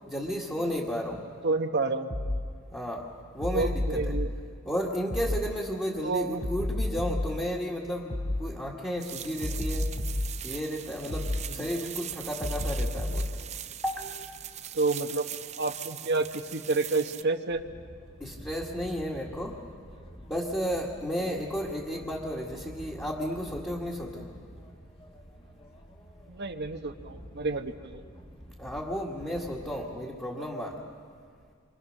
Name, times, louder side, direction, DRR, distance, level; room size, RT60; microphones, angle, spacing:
voice 1, 0.1-1.3 2.7-3.1 3.3-4.1 4.6-9.9 10.4-13.3 13.8-14.3 18.2-19.6 20.3-24.3 28.6-30.8, equal, 10° left, -3 dB, 1.9 m, -33 dB
voice 2, 1.4-2.1 3.5-4.3 6.0-6.4 11.5-11.7 14.7-15.3 15.6-17.6 21.2-21.4 26.3-28.0, right 3 dB, 55° right, 6 dB, 1.0 m, -29 dB
sound 1, 2.1-2.4 3.4-4.3 5.1-5.4 6.4-7.3 8.1-8.4 9.4-10.3 11.1-11.4 12.4-13.3, left 1 dB, 45° left, 4.6 m, -30 dB
sound 2, 9.0-17.2, right 10 dB, 35° right, 0.6 m, -41 dB
sound 3, 17.5-29.9, equal, 25° left, 1.7 m, -48 dB
28.0 x 25.0 x 6.6 m, 2.1 s
head